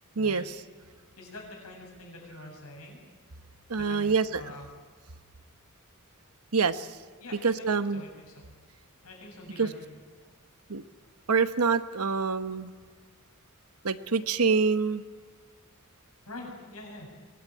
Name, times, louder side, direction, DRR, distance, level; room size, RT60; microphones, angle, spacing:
voice 1, 0.2-0.5 3.7-4.4 6.5-6.9 7.4-8.0 9.6-9.7 10.7-10.8 11.3-12.7 13.8-15.0, right 5 dB, 85° right, 11 dB, 1.1 m, -26 dB
voice 2, 1.2-3.0 3.7-4.7 7.2-8.4 9.0-10.0 16.3-17.1, left 2 dB, 85° left, 0 dB, 7.3 m, -45 dB
24.5 x 20.0 x 9.2 m, 1.5 s
head